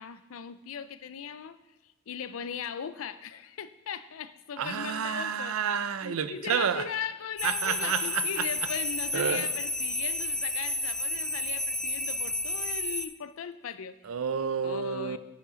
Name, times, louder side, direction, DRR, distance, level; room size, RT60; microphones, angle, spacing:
voice 1, 0.0-1.6 2.1-5.6 6.0-14.0 14.6-15.2, left 7 dB, 75° left, 14 dB, 0.4 m, -38 dB
voice 2, 4.6-6.8 7.4-8.5 9.1-9.5 14.0-15.2, right 7 dB, 85° right, 13 dB, 0.5 m, -30 dB
sound 1, 7.4-13.1, left 1 dB, 5° left, 0.3 m, -31 dB
8.2 x 5.0 x 5.0 m, 1.1 s
head